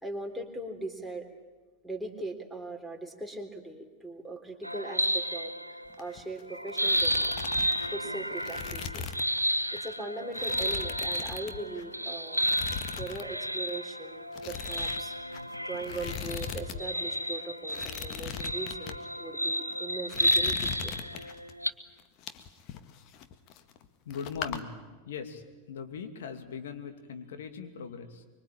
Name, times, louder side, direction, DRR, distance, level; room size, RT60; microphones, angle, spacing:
voice 1, 0.0-1.3 1.8-5.5 6.0-7.3 7.9-9.1 9.7-12.4 12.9-14.2 14.5-15.1 15.6-20.9, right 2 dB, ahead, 6 dB, 3.6 m, -39 dB
sound 1, 4.6-6.1 6.5-21.7, equal, 90° right, 0.7 m, -32 dB
sound 2, 5.9-6.4 6.7-9.4 9.8-9.9 10.3-11.9 12.3-13.3 13.5-13.8 14.3-16.8 17.0-17.1 17.6-19.0 19.5-19.8 20.1-21.5 22.0-23.9 24.1-24.6, left 7 dB, 40° left, 1.7 m, -39 dB
voice 2, 24.0-24.8 25.0-28.2, left 6 dB, 60° left, 7 dB, 2.5 m, -40 dB
24.5 x 24.0 x 8.9 m, 1.3 s
figure-of-eight pair, 90°, 0 cm